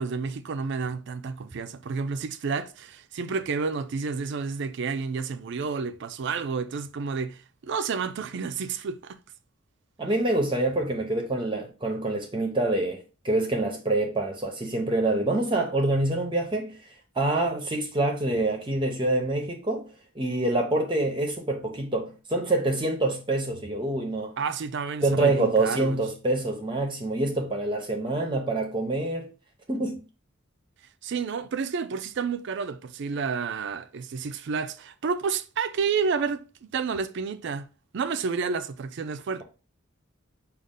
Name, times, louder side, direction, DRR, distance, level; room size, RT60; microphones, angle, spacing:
voice 1, 0.0-9.2 24.4-26.0 31.0-37.6 37.9-39.4, right 5 dB, 60° right, 0.4 m, -30 dB
voice 2, 10.0-16.8 17.1-19.8 20.2-24.3 25.0-29.3 29.7-30.0, right 2 dB, 25° right, 0.6 m, -26 dB
5.1 x 2.4 x 3.6 m
head